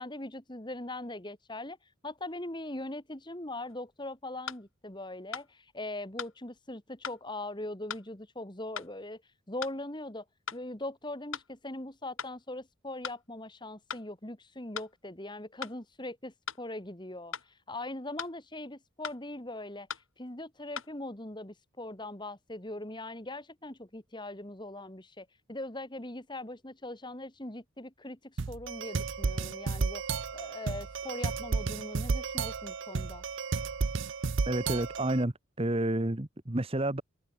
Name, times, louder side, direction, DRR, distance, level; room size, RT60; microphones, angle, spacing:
voice 1, 0.0-1.8 2.0-9.2 9.5-10.2 10.5-30.0 30.3-33.2, left 1 dB, 20° left, 1.9 m, -41 dB
sound 1, 3.7-3.8 4.5-4.6 5.3-5.5 6.2-6.4 7.0-7.2 7.9-8.1 8.8-8.9 9.6-9.8 10.5-10.6 11.3-11.5 12.2-12.4 13.0-13.2 13.9-14.1 14.7-14.9 15.6-15.8 16.5-16.6 17.3-17.5 18.2-18.4 19.0-19.2 19.9-20.1 20.8-20.9, left 7 dB, 70° left, 3.5 m, -39 dB
sound 2, 28.4-35.2, right 4 dB, 60° right, 0.6 m, -33 dB
voice 2, 34.5-37.0, right 1 dB, 25° right, 1.1 m, -30 dB
head